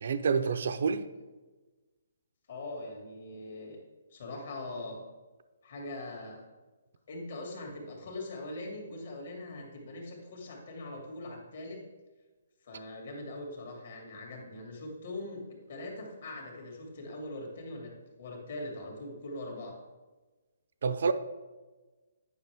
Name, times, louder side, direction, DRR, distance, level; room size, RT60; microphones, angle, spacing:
voice 1, 0.0-1.0 20.8-21.1, right 5 dB, 65° right, 0.5 m, -28 dB
voice 2, 2.5-3.8 4.1-5.0 5.6-6.4 7.1-11.8 12.6-15.4 15.7-19.8, left 2 dB, 60° left, 2.0 m, -41 dB
9.4 x 5.7 x 3.5 m
hypercardioid pair, 155°, 0 cm